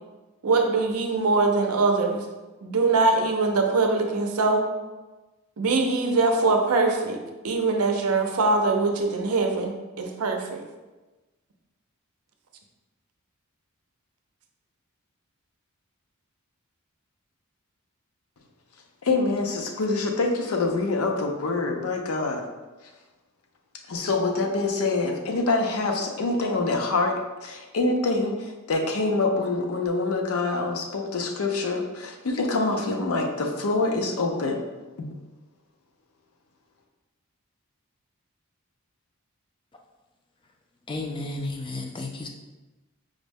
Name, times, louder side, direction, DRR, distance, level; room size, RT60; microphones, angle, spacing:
voice 1, 0.4-2.2 2.6-4.7 5.6-7.2 7.4-10.6, right 3 dB, 85° right, 4 dB, 0.5 m, -22 dB
voice 2, 19.0-22.4 23.9-34.6 35.0-35.1, left 3 dB, 75° left, 2 dB, 0.5 m, -25 dB
voice 3, 40.9-42.3, left 2 dB, 20° left, 2 dB, 0.3 m, -32 dB
5.0 x 2.1 x 3.4 m, 1.2 s
head